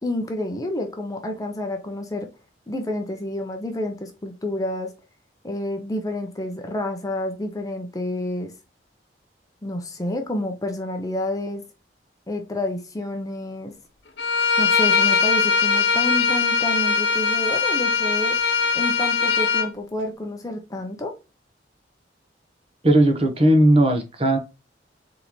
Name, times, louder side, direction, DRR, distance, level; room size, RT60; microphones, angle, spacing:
voice 1, 0.0-2.3 2.7-4.9 5.4-8.5 9.6-11.6 12.3-13.7 14.6-18.4 18.7-21.1, left 1 dB, 20° left, 4 dB, 0.7 m, -29 dB
Bowed string instrument, 14.2-19.7, left 5 dB, 65° left, 0.9 m, -21 dB
voice 2, 22.8-24.4, right 1 dB, 30° right, 3 dB, 1.0 m, -17 dB
4.0 x 3.7 x 3.0 m, 0.28 s
head